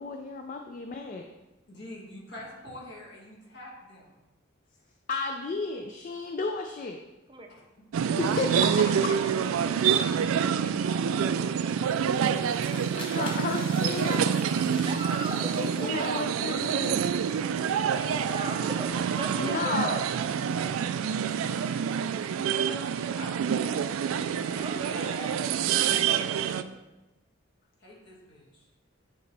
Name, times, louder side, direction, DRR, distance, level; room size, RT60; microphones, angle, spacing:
voice 1, 0.0-1.3 5.1-7.0 8.2-9.2 12.9-14.4 15.6-17.3 19.4-20.0, left 4 dB, 40° left, 4 dB, 0.3 m, -33 dB
voice 2, 1.7-4.1 7.5-7.6 9.7-12.0 17.6-18.4 20.5-20.8 22.3-23.9 24.3-26.3 27.8-28.7, left 1 dB, 55° left, -5 dB, 1.9 m, -46 dB
sound 1, 7.9-26.6, right 7 dB, 80° right, 0.3 m, -27 dB
sound 2, 11.7-17.8, left 1 dB, 25° left, 0.9 m, -45 dB
voice 3, 14.7-15.9 18.2-18.9 19.2-20.0 24.6-25.2, right 2 dB, 25° right, 3 dB, 0.5 m, -37 dB
9.2 x 3.8 x 3.3 m, 1.1 s
head